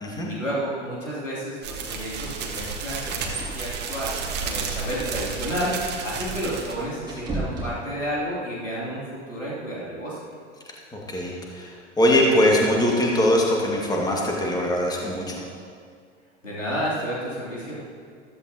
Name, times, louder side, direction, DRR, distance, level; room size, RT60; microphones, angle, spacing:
voice 1, 0.3-4.1 4.4-10.2 16.4-17.8, equal, 85° left, -7 dB, 3.3 m, -31 dB
sound 1, 1.6-6.8, right 5 dB, 30° right, 1.6 m, -32 dB
sound 2, 2.6-8.3, right 2 dB, 10° right, 3.1 m, -38 dB
voice 2, 10.9-15.4, left 1 dB, 10° left, -2 dB, 2.1 m, -22 dB
15.0 x 14.0 x 3.0 m, 2.1 s
figure-of-eight pair, 90°, 37 cm